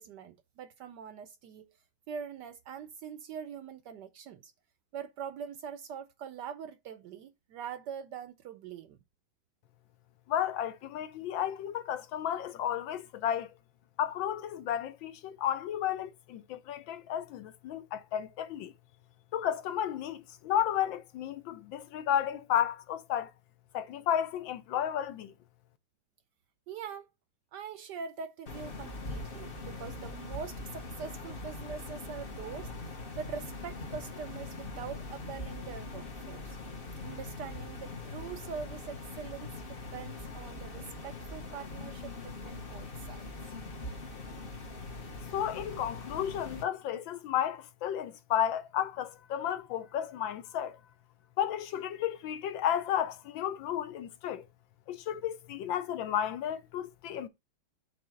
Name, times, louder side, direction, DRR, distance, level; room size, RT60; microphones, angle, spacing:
voice 1, 0.0-1.7 2.1-4.5 4.9-9.0 26.7-27.1 27.5-32.7 33.2-36.6 37.0-43.5, right 7 dB, 70° right, 1.0 m, -43 dB
voice 2, 10.3-13.5 14.0-18.7 19.3-23.3 23.7-25.3 45.3-50.8 51.4-54.4 54.9-57.3, left 10 dB, 75° left, 1.4 m, -33 dB
sound 1, 28.5-46.6, left 3 dB, 35° left, 1.0 m, -42 dB
7.8 x 3.3 x 6.2 m
omnidirectional pair, 2.2 m